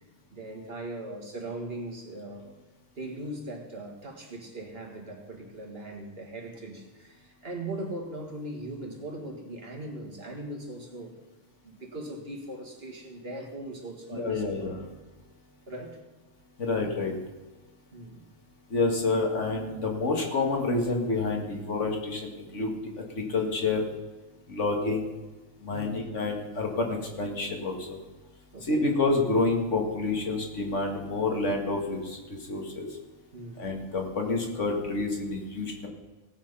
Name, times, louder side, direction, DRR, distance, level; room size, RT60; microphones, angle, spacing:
voice 1, 0.3-2.6 3.0-11.1 11.6-14.8 15.7-16.0 17.9-18.3 25.7-25.9 28.5-28.9 33.3-33.7, right 1 dB, 50° right, 1 dB, 2.1 m, -39 dB
voice 2, 14.1-14.8 16.6-17.1 18.7-23.9 24.5-25.1 25.6-28.0 28.7-32.9 33.6-35.9, left 3 dB, 65° left, 1 dB, 2.3 m, -28 dB
18.0 x 7.5 x 5.6 m, 1.2 s
omnidirectional pair, 1.4 m